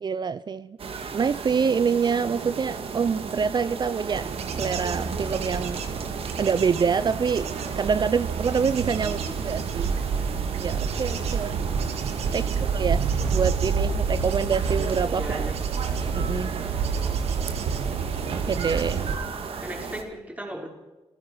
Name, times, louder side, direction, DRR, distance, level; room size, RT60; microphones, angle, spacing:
voice 1, 0.0-0.8 1.1-5.8 6.4-7.5 7.8-10.0 10.6-11.6 12.0-13.0 13.3-15.4 16.1-16.5 18.3-19.0, right 6 dB, 45° right, 0.6 m, -26 dB
sound 1, 0.8-20.0, right 5 dB, 65° right, 2.4 m, -35 dB
Bird / Insect / Wind, 4.1-19.1, right 6 dB, 80° right, 2.2 m, -28 dB
voice 2, 9.0-9.4 12.2-12.6 15.1-15.6 19.6-20.7, right 1 dB, 15° right, 5.5 m, -37 dB
27.5 x 15.5 x 6.4 m
cardioid pair, 75°, 11 cm